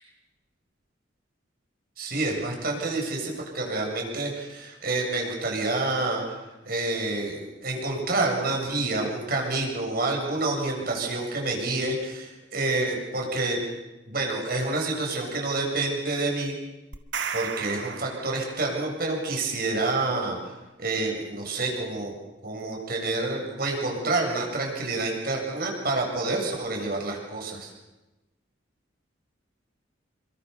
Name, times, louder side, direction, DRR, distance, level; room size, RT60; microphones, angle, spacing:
voice 1, 2.0-6.4 6.6-13.6 14.1-16.5 17.3-20.5 20.8-22.1 22.4-27.7, right 2 dB, 50° right, 1 dB, 7.7 m, -28 dB
sound 1, 16.9-18.9, right 6 dB, 75° right, 2.1 m, -34 dB
28.5 x 25.0 x 7.1 m, 1.1 s
head